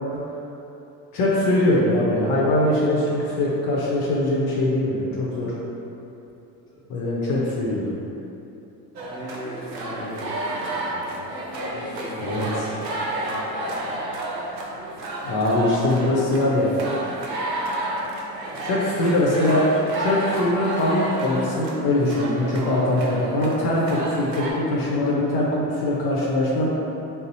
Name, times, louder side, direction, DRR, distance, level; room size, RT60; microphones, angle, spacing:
voice 1, 1.1-5.6 6.9-7.9 12.2-12.5 15.2-16.7 18.6-19.7 20.0-26.7, left 1 dB, 50° left, -5 dB, 0.7 m, -22 dB
sound 1, 9.0-24.5, right 1 dB, 90° right, 0.6 m, -31 dB
voice 2, 9.1-11.3 11.6-13.9, equal, 10° left, -8 dB, 1.0 m, -39 dB
3.9 x 2.0 x 4.0 m, 2.9 s
hypercardioid pair, 65°, 48 cm